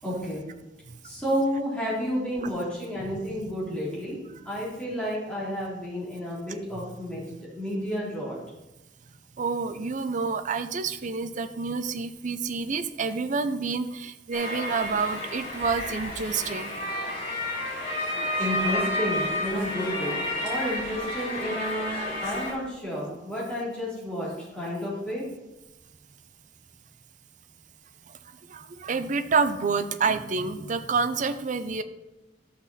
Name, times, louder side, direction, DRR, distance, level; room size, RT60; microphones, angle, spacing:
voice 1, 0.0-0.4 1.0-4.2 4.4-7.2 7.5-8.4 18.4-25.2, equal, 5° left, -7 dB, 3.3 m, -31 dB
voice 2, 3.1-3.4 9.4-16.7 28.5-31.8, right 4 dB, 45° right, 9 dB, 0.5 m, -28 dB
sound 1, 14.3-22.5, left 1 dB, 70° left, 3.9 m, -31 dB
12.5 x 5.9 x 4.2 m, 1.0 s
head